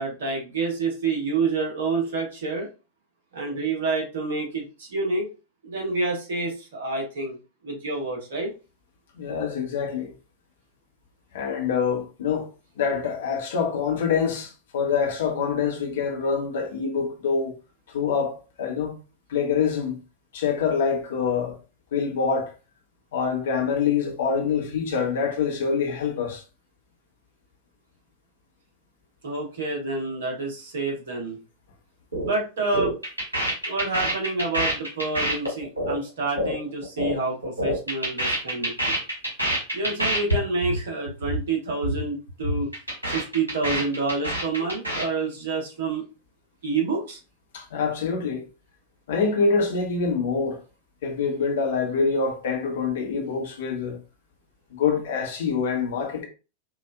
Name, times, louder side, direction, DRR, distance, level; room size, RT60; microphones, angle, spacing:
voice 1, 0.0-2.7 3.3-5.3 5.6-7.4 7.6-8.5 29.2-31.4 32.2-33.0 33.6-39.0 39.7-42.7 43.1-46.0 46.6-47.2, right 3 dB, 60° right, 1.4 m, -28 dB
voice 2, 9.2-10.1 11.3-12.5 12.8-17.5 17.9-19.0 19.3-20.0 20.3-21.6 21.9-22.5 23.1-26.4 47.5-48.5 49.1-50.6 51.0-54.0 54.7-56.3, left 5 dB, 60° left, 1.0 m, -25 dB
sound 1, 32.1-32.3 32.6-37.2 37.4-40.4 40.6-40.8 41.1-41.4 41.7-42.0 42.3-45.1, right 1 dB, 80° right, 1.6 m, -26 dB
4.7 x 2.6 x 2.2 m
figure-of-eight pair, 90°, 0 cm